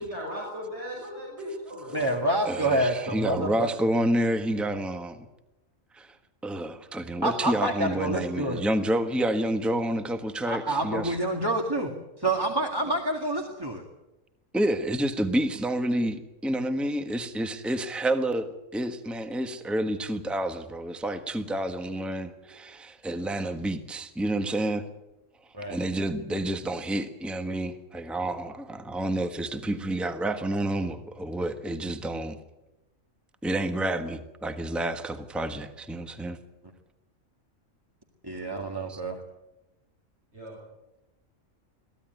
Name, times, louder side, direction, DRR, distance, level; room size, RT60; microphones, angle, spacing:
voice 1, 0.0-2.0 40.3-40.6, equal, 55° right, 6.8 m, -37 dB
voice 2, 1.9-3.7 7.2-8.6 10.5-11.9 12.2-13.8 25.5-25.8 26.3-26.4 38.2-39.2, right 1 dB, 15° right, 2.1 m, -27 dB
voice 3, 2.4-5.2 5.9-6.2 6.4-11.2 14.5-24.8 25.7-32.4 33.4-36.4 38.9-39.0, right 1 dB, ahead, 1.3 m, -29 dB
23.5 x 15.5 x 9.3 m
omnidirectional pair, 1.4 m